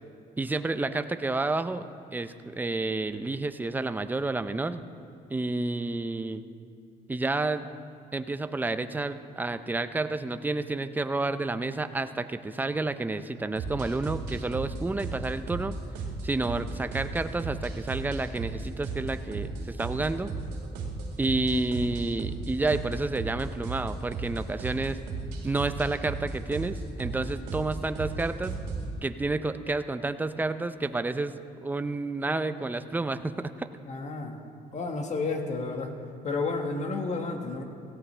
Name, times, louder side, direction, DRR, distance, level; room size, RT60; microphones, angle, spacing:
voice 1, 0.4-4.8 5.3-6.4 7.1-7.7 8.1-15.7 16.2-20.3 21.2-25.0 25.4-28.6 29.0-33.7, right 2 dB, 10° right, 11 dB, 0.5 m, -30 dB
sound 1, 13.6-28.9, right 3 dB, 85° right, 2.2 m, -35 dB
voice 2, 33.9-34.4 34.7-35.9 36.2-37.6, left 3 dB, 45° left, 4 dB, 1.6 m, -31 dB
17.0 x 16.5 x 3.3 m, 2.5 s
cardioid pair, 110°, 17 cm